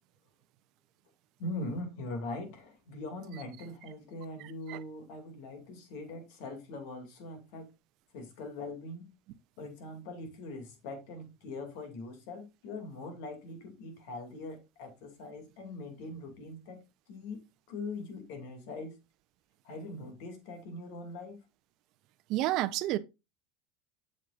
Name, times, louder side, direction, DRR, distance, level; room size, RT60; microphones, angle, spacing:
voice 1, 1.4-7.7 8.1-9.1 9.6-19.0 19.6-21.4, left 2 dB, 65° left, 2.4 m, -42 dB
voice 2, 22.3-23.0, right 15 dB, 55° right, 0.6 m, -29 dB
7.6 x 6.6 x 2.5 m
hypercardioid pair, 100°, 0 cm